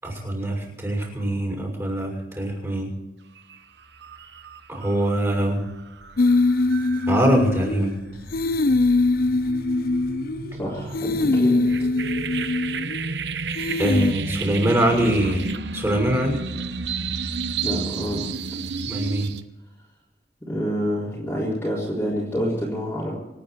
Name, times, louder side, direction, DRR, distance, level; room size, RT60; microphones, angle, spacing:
voice 1, 0.0-2.9 4.7-5.6 7.1-7.9 13.8-15.4 15.7-16.4 18.9-19.3, right 1 dB, 15° right, 0 dB, 6.5 m, -23 dB
sound 1, 3.4-3.6 3.9-19.4, right 4 dB, 75° right, 1.0 m, -32 dB
sound 2, 6.2-8.0 8.3-10.5 10.9-13.1 13.6-14.1, left 3 dB, 55° left, 0.5 m, -22 dB
voice 2, 10.6-11.7 17.6-18.3 20.5-23.2, equal, 15° left, -6 dB, 3.9 m, -27 dB
26.5 x 9.8 x 4.6 m, 1.1 s
head